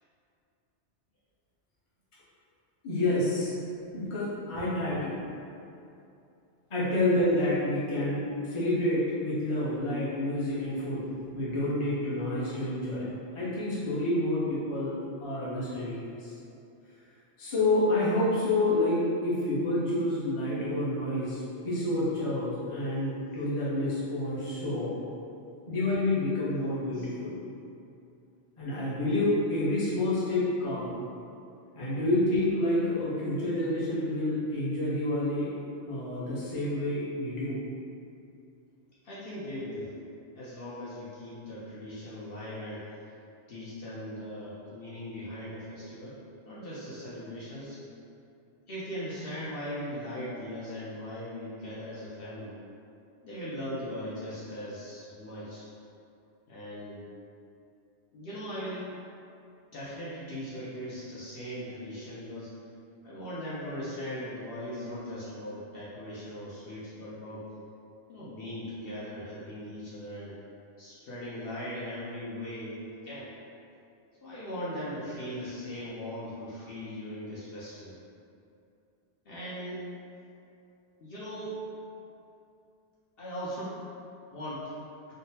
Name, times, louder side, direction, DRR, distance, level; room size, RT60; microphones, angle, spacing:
voice 1, 2.8-3.5 3.9-5.2 6.7-11.1 11.3-16.3 17.4-24.9 25.7-27.4 28.6-31.0 31.7-35.5 35.8-37.6, left 1 dB, 35° left, -9 dB, 0.7 m, -28 dB
voice 2, 39.0-39.9 40.3-42.8 43.5-46.1 46.5-47.8 48.7-52.6 53.2-55.7 56.5-57.1 58.1-59.0 59.7-62.5 63.0-67.5 68.1-70.4 70.8-73.3 74.2-78.0 79.3-79.9 81.0-81.7 83.2-83.9 84.3-84.7, equal, 65° left, -9 dB, 0.8 m, -39 dB
3.6 x 2.0 x 2.7 m, 2.6 s
omnidirectional pair, 1.2 m